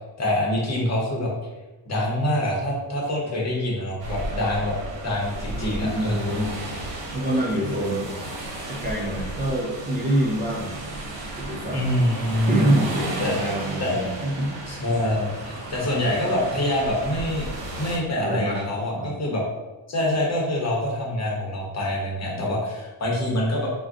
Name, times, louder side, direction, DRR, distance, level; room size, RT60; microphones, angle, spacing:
voice 1, 0.2-1.3 1.8-4.7 5.0-6.4 11.7-12.5 13.2-13.3 13.8-14.0 14.7-17.5 17.8-19.4 19.9-23.7, left 1 dB, 35° left, -3 dB, 0.8 m, -25 dB
sound 1, 4.0-18.0, right 2 dB, 80° right, 0.8 m, -34 dB
voice 2, 5.5-6.6 7.1-8.1 8.7-10.8 11.4-11.8 12.5-14.5 18.2-18.7 18.9-19.1 22.2-22.4, right 1 dB, 20° right, -5 dB, 0.5 m, -26 dB
2.5 x 2.2 x 3.5 m, 1.1 s
cardioid pair, 110°, 44 cm